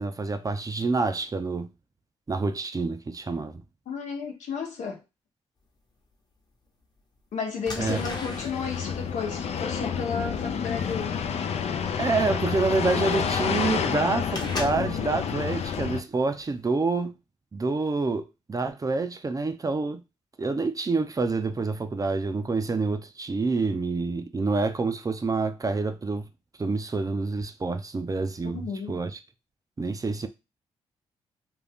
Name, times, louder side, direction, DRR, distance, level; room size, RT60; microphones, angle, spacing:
voice 1, 0.0-1.7 2.3-3.6 7.8-8.0 12.0-17.1 17.5-20.0 20.4-26.3 26.6-29.2 29.8-30.3, right 3 dB, 30° right, 0.5 m, -27 dB
voice 2, 3.9-5.0 7.3-11.2 28.4-28.9, left 5 dB, 75° left, 0.9 m, -33 dB
sound 1, 6.1-6.2 7.0-7.2 7.6-15.1 15.5-15.9 16.3-16.6, left 2 dB, 35° left, 1.0 m, -39 dB
sound 2, 7.8-16.0, left 7 dB, 60° left, 0.4 m, -29 dB
2.5 x 2.2 x 3.4 m
supercardioid pair, 50°, 12 cm